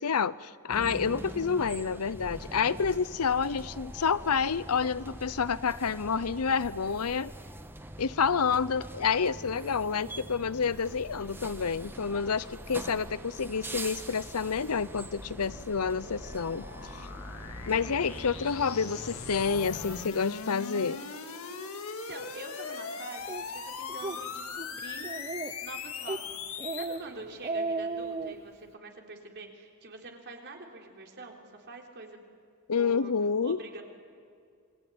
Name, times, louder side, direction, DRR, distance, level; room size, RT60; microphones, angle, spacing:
voice 1, 0.0-7.3 8.0-16.7 17.7-21.0 32.7-33.6, left 6 dB, 85° left, 18 dB, 0.7 m, -29 dB
sound 1, 0.7-20.1, right 1 dB, 10° right, 1.5 m, -44 dB
sound 2, 13.3-27.0, left 5 dB, 70° left, 2.2 m, -41 dB
voice 2, 21.9-25.1 25.6-32.2 32.8-33.1 33.4-33.8, right 2 dB, 50° right, 2 dB, 3.9 m, -45 dB
Speech, 23.3-23.4 23.9-24.2 24.6-24.7 25.0-25.6 26.1-26.2 26.6-27.0 27.3-28.3, right 3 dB, 30° right, 0.8 m, -34 dB
27.5 x 22.5 x 9.5 m, 2.3 s
head